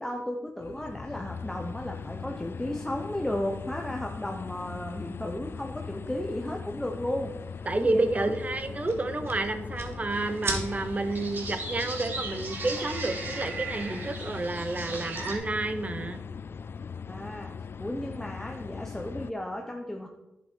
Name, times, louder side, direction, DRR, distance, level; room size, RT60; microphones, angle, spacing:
voice 1, 0.0-7.4 7.7-8.3 17.1-17.5 17.8-20.1, left 1 dB, 10° left, 1 dB, 0.9 m, -34 dB
sound 1, 0.6-19.3, left 6 dB, 55° left, 0.3 m, -40 dB
sound 2, 6.8-13.6, right 3 dB, 65° right, 1.7 m, -42 dB
voice 2, 7.7-16.2, right 2 dB, 30° right, 9 dB, 1.0 m, -30 dB
sound 3, 10.1-15.4, right 3 dB, 45° right, 2.9 m, -38 dB
11.0 x 7.2 x 4.6 m, 0.97 s
wide cardioid pair, 95°, 5 cm